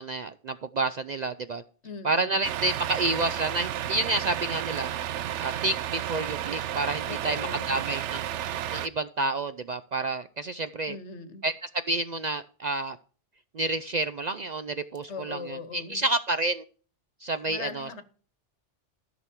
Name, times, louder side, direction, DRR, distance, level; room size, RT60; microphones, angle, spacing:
voice 1, 0.0-1.6 2.0-4.9 5.4-8.2 8.7-10.9 11.4-11.5 11.9-13.0 13.5-16.6 17.2-18.0, right 2 dB, 55° right, 0.5 m, -29 dB
voice 2, 1.8-2.5 7.1-7.9 10.9-11.5 15.1-16.0 17.5-18.0, left 4 dB, 70° left, 1.5 m, -40 dB
Truck, 2.4-8.9, right 11 dB, 75° right, 0.9 m, -32 dB
14.0 x 6.1 x 4.5 m
omnidirectional pair, 1.2 m